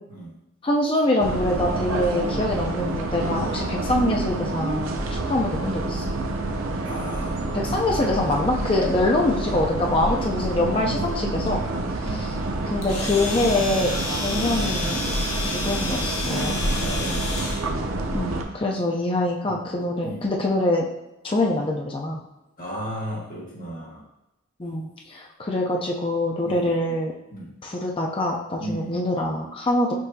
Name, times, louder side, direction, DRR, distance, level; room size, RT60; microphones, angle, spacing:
voice 1, 0.6-6.0 7.5-11.6 12.6-15.1 15.4-16.6 18.1-20.8 21.2-22.2 24.6-27.1 27.6-29.9, left 1 dB, 25° left, -1 dB, 0.5 m, -24 dB
sound 1, 1.2-18.4, right 2 dB, 90° right, 0.5 m, -28 dB
voice 2, 6.8-7.6 10.8-11.1 12.0-12.2 14.3-14.5 16.7-17.9 19.4-19.6 20.0-20.2 22.6-24.0 26.4-27.0 27.3-27.6 28.6-29.0, equal, 45° left, -5 dB, 1.3 m, -35 dB
Domestic sounds home sounds, 12.8-17.7, left 2 dB, 85° left, 0.9 m, -31 dB
6.1 x 2.7 x 2.7 m, 0.92 s
head